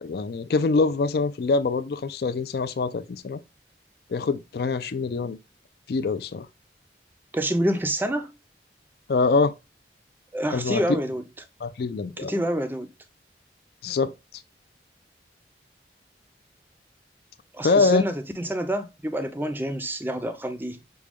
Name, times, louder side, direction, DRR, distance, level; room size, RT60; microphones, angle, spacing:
voice 1, 0.0-3.4 4.1-5.4 5.9-6.5 9.1-9.5 10.5-11.0 11.6-12.3 13.8-14.1 17.6-18.0, left 4 dB, 60° left, 0.4 m, -24 dB
voice 2, 7.3-8.3 10.3-11.2 12.2-12.9 17.5-20.8, right 1 dB, 10° right, 0.5 m, -27 dB
6.1 x 2.2 x 3.5 m
head